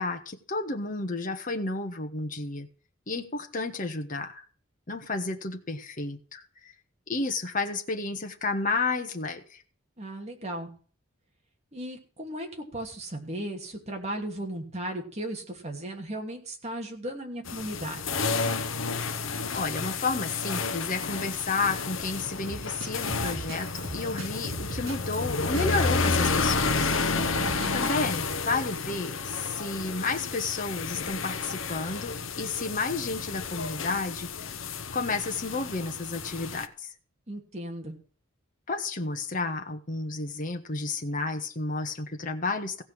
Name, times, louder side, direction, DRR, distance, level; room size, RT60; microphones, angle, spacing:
voice 1, 0.0-2.7 3.1-4.4 4.9-6.4 7.1-9.6 19.5-34.3 34.9-36.9 38.7-42.8, left 3 dB, 40° left, 4 dB, 1.4 m, -31 dB
voice 2, 10.0-10.7 11.7-18.0 27.4-27.7 37.3-38.0, right 1 dB, 30° right, 2 dB, 2.8 m, -36 dB
sound 1, 17.5-36.7, left 4 dB, 70° left, 0.9 m, -31 dB
Drum kit, 22.5-28.0, right 2 dB, 80° right, 4.0 m, -39 dB
16.0 x 5.4 x 7.8 m, 0.41 s
head